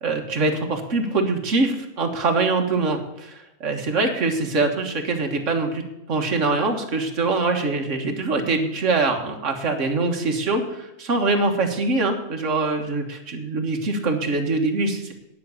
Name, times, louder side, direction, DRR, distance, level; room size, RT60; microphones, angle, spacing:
voice 1, 0.0-5.8 6.1-15.1, right 3 dB, 60° right, 3 dB, 1.8 m, -23 dB
10.5 x 6.0 x 8.3 m, 0.93 s
omnidirectional pair, 1.4 m